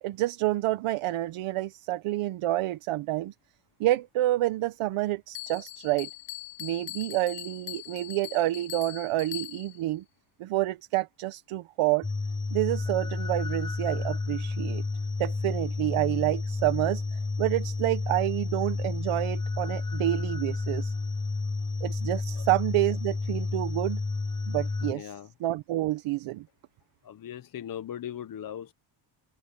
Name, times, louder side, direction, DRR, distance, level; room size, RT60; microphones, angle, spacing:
voice 1, 0.0-3.3 3.8-6.1 6.6-10.0 10.4-12.1 12.5-14.8 15.2-20.9 21.8-24.0 24.5-25.1 25.4-26.4, right 16 dB, 80° right, 1.2 m, -28 dB
Bell, 5.3-9.9, left 17 dB, 60° left, 7.4 m, -41 dB
sound 1, 12.0-24.9, left 3 dB, 10° left, 0.4 m, -31 dB
voice 2, 24.8-25.3 27.0-28.7, left 10 dB, 45° left, 0.9 m, -39 dB
open air
cardioid pair, 100°, 50 cm